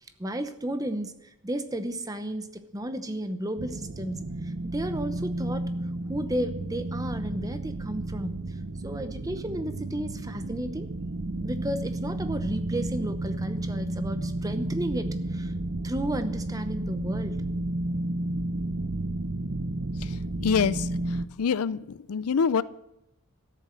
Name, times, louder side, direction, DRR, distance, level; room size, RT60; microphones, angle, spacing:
voice 1, 0.2-5.7 6.1-8.6 8.8-10.9 11.4-15.5 15.8-17.5, right 1 dB, 15° right, 9 dB, 0.8 m, -33 dB
sound 1, 3.6-21.3, right 2 dB, 60° right, 0.7 m, -32 dB
voice 2, 20.4-22.6, left 6 dB, 85° left, 18 dB, 0.5 m, -26 dB
13.0 x 7.6 x 7.5 m, 0.85 s
head